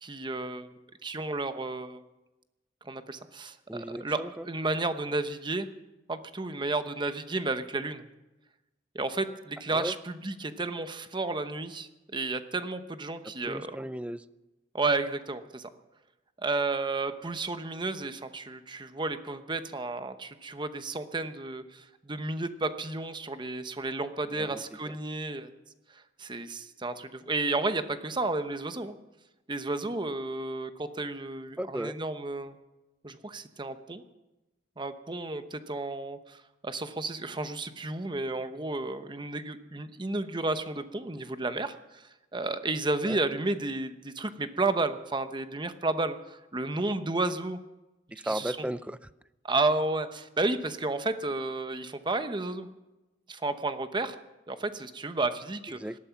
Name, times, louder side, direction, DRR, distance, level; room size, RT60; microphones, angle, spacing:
voice 1, 0.0-0.7 1.0-2.0 2.8-5.7 6.1-8.0 8.9-13.7 14.7-15.7 16.4-25.5 25.9-29.0 29.5-32.6 33.0-34.0 34.8-47.6 48.2-48.7 49.4-52.7 53.3-54.2 54.5-55.8, right 2 dB, 25° right, 10 dB, 0.9 m, -32 dB
voice 2, 3.7-4.5 9.7-9.9 13.2-14.2 24.3-25.0 31.6-31.9 43.0-43.2 48.1-49.1 55.8-56.0, right 1 dB, 5° right, 15 dB, 0.4 m, -36 dB
18.5 x 13.0 x 5.9 m, 1.0 s
head